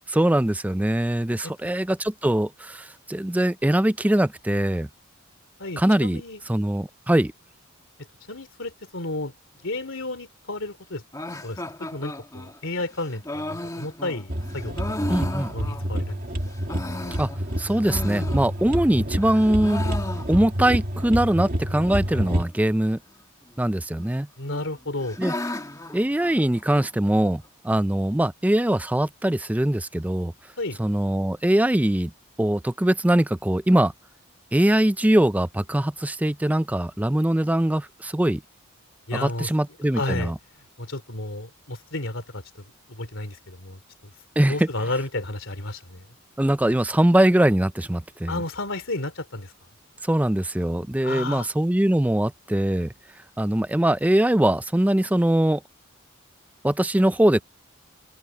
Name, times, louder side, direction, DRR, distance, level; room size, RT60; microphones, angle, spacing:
voice 1, 0.1-4.9 5.8-6.2 6.5-7.3 15.1-15.5 17.2-17.3 17.6-19.8 20.3-23.0 23.6-24.3 25.2-25.3 25.9-30.3 30.8-32.1 32.4-33.9 34.5-38.4 39.1-40.4 44.4-44.7 46.4-48.4 50.0-52.9 53.4-55.6 56.6-57.4, right 1 dB, 5° right, 0.4 m, -22 dB
voice 2, 5.6-6.4 8.3-9.3 9.6-11.0 11.4-11.6 11.9-15.1 15.5-16.2 24.4-25.2 30.6-30.8 39.1-39.5 39.9-40.3 40.8-42.4 42.9-43.8 44.5-46.1 48.3-49.5 51.0-51.5, left 2 dB, 60° left, 3.2 m, -32 dB
sound 1, 11.1-16.1 16.5-18.9 19.2-20.7 21.0-21.1 21.3-21.4 22.0-22.5 23.5-24.1 24.5-26.9, left 1 dB, 15° left, 2.0 m, -35 dB
sound 2, 14.3-22.4, equal, 40° right, 2.0 m, -28 dB
head